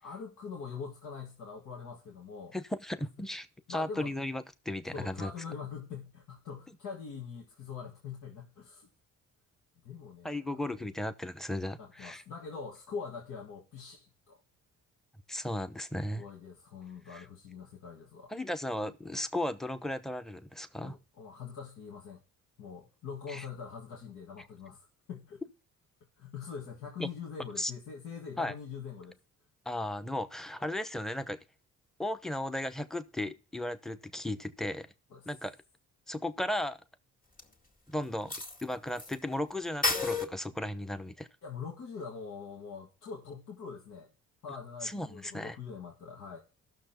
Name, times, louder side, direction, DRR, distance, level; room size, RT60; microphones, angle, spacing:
voice 1, 0.0-2.6 3.7-4.1 4.9-8.9 9.8-10.7 11.8-14.4 16.2-18.3 20.8-22.2 22.6-25.4 26.2-29.2 35.1-35.3 41.4-44.1 44.4-46.4, left 6 dB, 80° left, 2.0 m, -43 dB
voice 2, 2.5-5.3 10.2-12.2 15.3-16.3 17.1-17.2 18.3-21.0 23.3-23.4 27.0-27.1 27.6-27.7 28.4-28.5 29.7-31.4 32.0-34.9 35.3-35.5 36.1-36.8 37.9-38.3 38.6-41.3 44.8-45.6, left 1 dB, ahead, 0.8 m, -35 dB
sound 1, 37.4-37.5 38.3-39.1 39.4-39.5 39.8-40.2, left 3 dB, 25° left, 2.1 m, -30 dB
14.0 x 6.5 x 4.4 m
cardioid pair, 90°, 30 cm